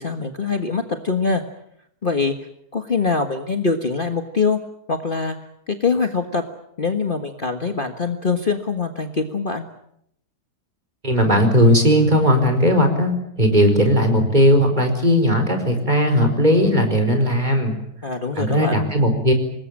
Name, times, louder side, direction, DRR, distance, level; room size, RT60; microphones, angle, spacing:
voice 1, 0.0-1.4 2.0-2.3 2.7-4.6 4.9-5.3 5.7-6.4 6.8-9.7 18.0-18.8, left 4 dB, 35° left, 6 dB, 1.6 m, -23 dB
voice 2, 11.0-17.8 18.3-19.3, equal, 25° right, 6 dB, 4.9 m, -17 dB
26.5 x 20.5 x 8.8 m, 0.74 s
omnidirectional pair, 1.7 m